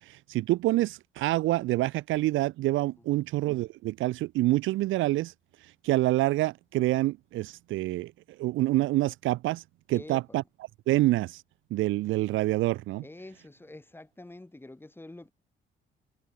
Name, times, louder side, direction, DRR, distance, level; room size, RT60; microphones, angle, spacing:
voice 1, 0.1-5.3 5.8-8.1 8.4-9.6 9.9-10.4 10.9-11.4 11.7-13.0, right 17 dB, 80° right, 0.4 m, -27 dB
voice 2, 9.9-10.4 13.0-15.3, left 2 dB, 10° left, 1.7 m, -47 dB
cardioid pair, 90°, 20 cm